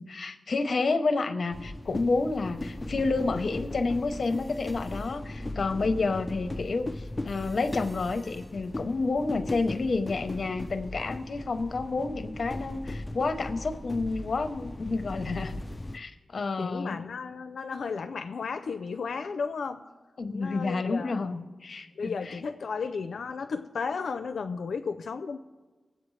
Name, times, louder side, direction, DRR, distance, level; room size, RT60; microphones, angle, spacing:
voice 1, 0.0-15.6 15.9-17.0 20.2-22.1, left 3 dB, 50° left, 8 dB, 0.8 m, -29 dB
sound 1, 1.5-16.0, left 1 dB, 15° left, 0.4 m, -38 dB
voice 2, 16.6-19.8 20.3-21.3 22.0-25.4, left 5 dB, 85° left, 8 dB, 0.5 m, -34 dB
21.5 x 8.0 x 3.2 m, 1.3 s
wide cardioid pair, 150°, 0 cm